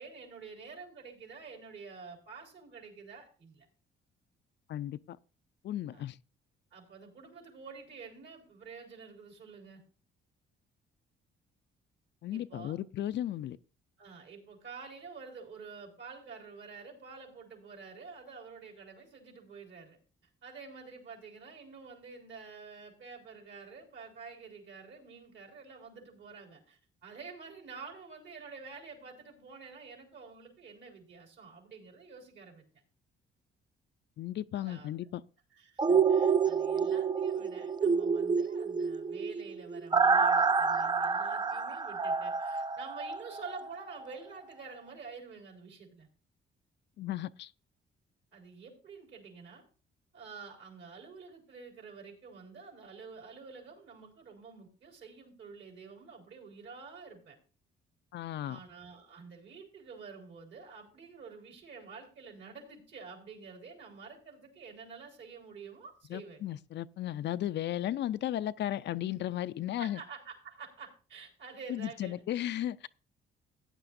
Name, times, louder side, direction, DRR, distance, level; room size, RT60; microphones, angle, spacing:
voice 1, 0.0-3.7 5.9-6.1 6.7-9.8 12.3-12.8 14.0-20.0 20.4-32.6 34.5-34.9 35.5-46.1 48.3-49.6 50.1-57.4 58.4-66.5 69.8-72.2, right 5 dB, 65° right, 4.2 m, -49 dB
voice 2, 4.7-5.2 5.6-6.2 12.2-13.6 34.2-35.2 47.0-47.5 58.1-58.6 66.1-70.0 71.7-72.9, left 12 dB, 60° left, 0.4 m, -35 dB
sound 1, 35.8-43.7 44.0-44.1, right 5 dB, 20° right, 0.4 m, -28 dB
15.0 x 9.8 x 2.6 m
cardioid pair, 90°, 20 cm